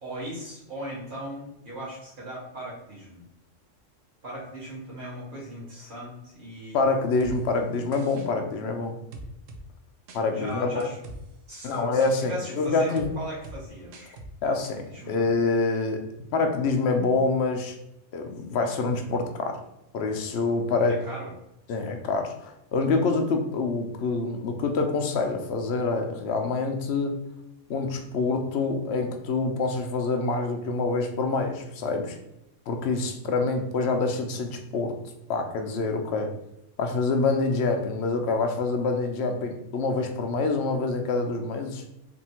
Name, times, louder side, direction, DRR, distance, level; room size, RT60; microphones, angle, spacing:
voice 1, 0.0-3.2 4.2-6.8 10.3-11.0 11.5-14.2 14.9-15.2 21.1-21.3, right 1 dB, 40° right, -7 dB, 1.6 m, -38 dB
voice 2, 6.7-9.0 10.1-10.9 11.6-13.2 14.4-16.0 16.3-17.8 18.1-19.6 19.9-21.1 21.7-27.2 27.7-32.2 32.7-34.9 35.3-36.3 36.8-41.8, left 3 dB, 65° left, 5 dB, 0.8 m, -26 dB
sound 1, 7.2-7.4 7.9-8.3 9.1-9.6 10.1-10.2 10.8-11.2 11.5-12.1 13.0-13.1 13.4-13.6 13.9-14.3 14.6-14.7, right 2 dB, 90° right, 1.0 m, -42 dB
3.5 x 2.6 x 4.2 m, 0.86 s
omnidirectional pair, 1.3 m